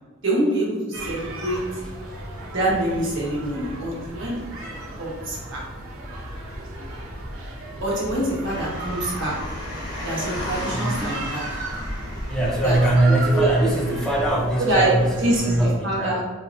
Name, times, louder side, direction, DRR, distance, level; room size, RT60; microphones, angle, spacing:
voice 1, 0.2-1.6 2.5-5.6 7.8-9.3 10.0-11.4 12.6-12.8 13.3-13.5 14.6-16.2, right 1 dB, 65° right, -6 dB, 1.3 m, -25 dB
sound 1, 0.9-15.7, right 1 dB, 85° right, 0.9 m, -35 dB
voice 2, 3.2-3.7 10.7-11.3 12.3-16.3, right 1 dB, 5° left, -4 dB, 0.6 m, -22 dB
Car, 8.4-14.3, left 1 dB, 20° left, 1.4 m, -34 dB
4.0 x 2.8 x 2.6 m, 1.3 s
head